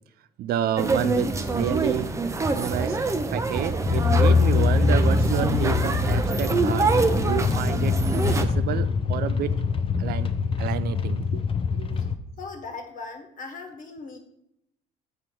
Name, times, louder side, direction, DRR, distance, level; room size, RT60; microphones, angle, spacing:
voice 1, 0.4-2.1 2.5-3.0 3.3-8.0 8.3-9.6 10.0-10.3 10.6-11.4 11.7-12.0, right 11 dB, 65° right, 14 dB, 0.4 m, -30 dB
sound 1, 0.8-8.5, right 3 dB, 15° right, 0.6 m, -25 dB
sound 2, 3.9-12.1, left 5 dB, 35° left, 0.6 m, -24 dB
voice 2, 12.4-14.2, left 4 dB, 50° left, 6 dB, 1.4 m, -38 dB
6.7 x 5.4 x 4.5 m, 0.77 s
cardioid pair, 110°, 17 cm